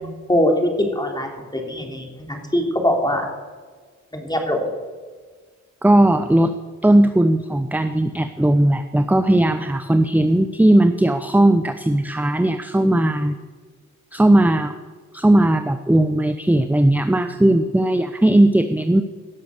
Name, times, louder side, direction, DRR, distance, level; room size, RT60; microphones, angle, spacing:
voice 1, 0.0-3.2 4.1-4.7, left 1 dB, 15° left, 1 dB, 3.5 m, -22 dB
voice 2, 5.8-6.5 6.8-13.3 14.1-14.7 15.1-19.0, right 1 dB, 5° right, 9 dB, 0.7 m, -17 dB
17.0 x 6.9 x 6.6 m, 1.5 s
cardioid pair, 55°, 30 cm